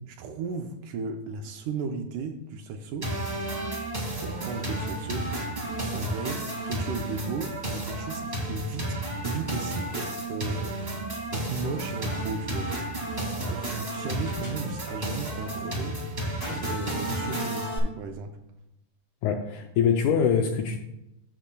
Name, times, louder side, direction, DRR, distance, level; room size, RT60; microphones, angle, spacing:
voice 1, 0.1-3.1 4.2-5.3 5.9-10.8 11.3-12.7 13.5-16.0 16.7-18.4, right 4 dB, 75° right, 4 dB, 1.9 m, -35 dB
sound 1, 3.0-17.8, right 1 dB, 20° right, 1.4 m, -32 dB
sound 2, 11.6-12.4 12.7-12.8 13.9-15.0 16.4-17.4, equal, 30° left, 3.1 m, -43 dB
voice 2, 19.2-20.8, left 7 dB, 80° left, 4 dB, 1.7 m, -24 dB
13.5 x 6.8 x 2.2 m, 0.89 s
omnidirectional pair, 3.9 m